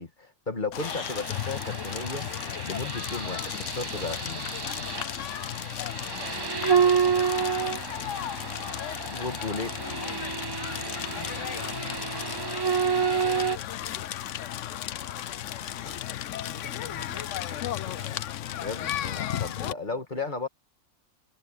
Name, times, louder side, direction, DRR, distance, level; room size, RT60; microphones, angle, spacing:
voice 1, 0.0-2.3 2.6-4.5 9.1-9.8 15.8-16.0 18.5-20.5, left 3 dB, 40° left, 1.7 m, -35 dB
Crackle, 0.7-19.7, left 12 dB, 75° left, 1.0 m, -34 dB
sound 1, 0.8-13.6, right 6 dB, 30° right, 0.4 m, -30 dB
sound 2, 1.7-2.3 3.7-3.8 4.1-4.2 4.5-7.3 7.6-8.8 9.1-9.4 9.7-13.8, right 5 dB, 60° right, 4.8 m, -61 dB
voice 2, 5.9-8.4 10.8-18.7 19.8-20.0, left 1 dB, 10° right, 1.7 m, -52 dB
omnidirectional pair, 1.3 m